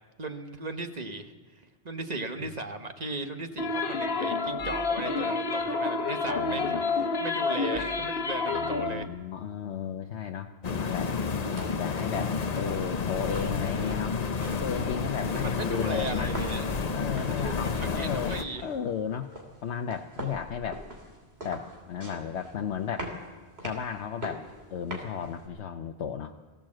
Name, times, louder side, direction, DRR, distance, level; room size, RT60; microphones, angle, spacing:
voice 1, 0.2-9.1 15.3-16.7 17.3-18.7, right 2 dB, 40° right, 6 dB, 1.4 m, -37 dB
sound 1, 3.6-9.1, left 4 dB, 60° left, 1.3 m, -29 dB
voice 2, 6.3-6.8 8.5-11.1 11.8-14.2 14.6-16.3 16.9-18.4 18.6-19.3 19.6-20.8 21.4-23.1 23.6-24.4 24.7-26.3, left 8 dB, 90° left, 4 dB, 1.1 m, -34 dB
sound 2, 10.6-18.4, left 5 dB, 40° left, 0.8 m, -30 dB
sound 3, 11.5-25.5, right 1 dB, 70° right, 3.4 m, -44 dB
22.0 x 16.0 x 7.7 m, 1.4 s
omnidirectional pair, 1.1 m